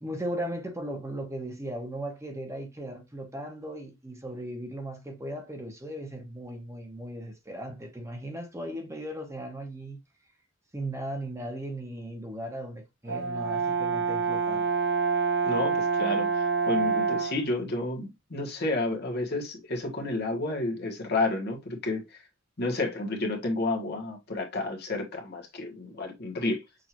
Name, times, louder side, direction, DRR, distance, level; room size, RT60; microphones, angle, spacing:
voice 1, 0.0-10.0 10.7-14.7, right 1 dB, 15° right, 1.0 m, -37 dB
Brass instrument, 13.1-17.5, right 5 dB, 70° right, 2.3 m, -27 dB
voice 2, 15.4-22.2 22.6-26.6, left 2 dB, 55° left, 1.4 m, -31 dB
6.5 x 2.6 x 2.9 m
head